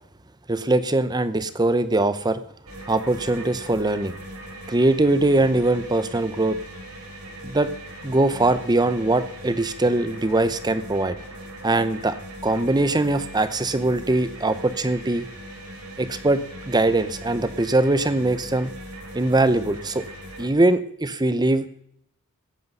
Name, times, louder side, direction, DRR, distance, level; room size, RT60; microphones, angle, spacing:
voice 1, 0.5-2.4 2.9-4.1 4.7-6.6 7.4-7.7 8.0-11.1 11.6-12.2 12.4-15.3 16.0-18.7 19.1-20.0 20.4-21.8, right 2 dB, 20° right, 13 dB, 0.8 m, -21 dB
sound 1, 2.7-20.5, right 1 dB, 80° right, 3.4 m, -40 dB
16.5 x 8.6 x 5.5 m, 0.69 s
head